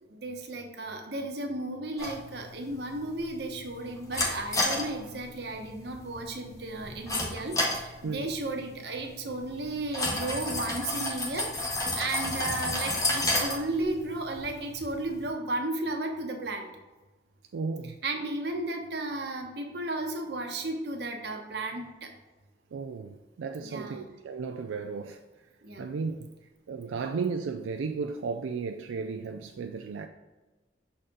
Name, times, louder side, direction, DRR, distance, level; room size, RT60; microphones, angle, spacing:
voice 1, 0.0-16.7 18.0-22.1 23.6-24.1 25.6-25.9, right 2 dB, 60° right, 1.0 m, -34 dB
sound 1, 2.0-15.3, left 1 dB, 20° left, 0.9 m, -33 dB
voice 2, 17.5-18.0 22.7-25.2 25.8-26.3 26.7-30.1, right 5 dB, 90° right, 0.4 m, -34 dB
6.5 x 4.3 x 3.7 m
head